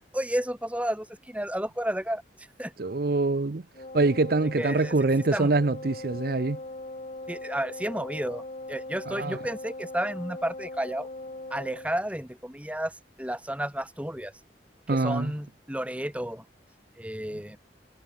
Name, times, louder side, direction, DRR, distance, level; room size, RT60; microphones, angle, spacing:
voice 1, 0.0-2.2 2.6-2.7 4.6-5.0 5.3-5.5 7.3-8.4 8.7-11.1 11.5-12.9 13.2-14.3 14.9-16.4 17.0-17.6, right 1 dB, 10° right, 6.8 m, -31 dB
voice 2, 2.8-3.6 3.9-6.6 9.1-9.4 14.9-15.3, right 3 dB, 55° right, 0.7 m, -25 dB
Wind instrument woodwind instrument, 3.7-11.9, left 2 dB, 40° left, 1.8 m, -40 dB
head